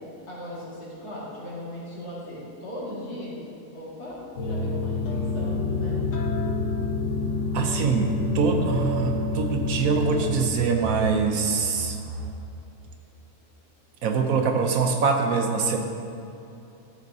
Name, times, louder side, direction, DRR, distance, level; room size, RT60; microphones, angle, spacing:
voice 1, 0.3-3.4 3.7-6.0, left 1 dB, 85° left, -8 dB, 2.7 m, -38 dB
sound 1, 4.1-4.2 4.6-4.7 5.2-5.3 6.2-12.3, right 4 dB, 40° right, 0.6 m, -40 dB
sound 2, 4.4-10.5, left 3 dB, 60° left, 1.3 m, -27 dB
voice 2, 7.5-12.0 14.0-15.8, right 5 dB, 70° right, 4 dB, 1.2 m, -24 dB
12.5 x 7.2 x 2.8 m, 2.7 s
omnidirectional pair, 1.6 m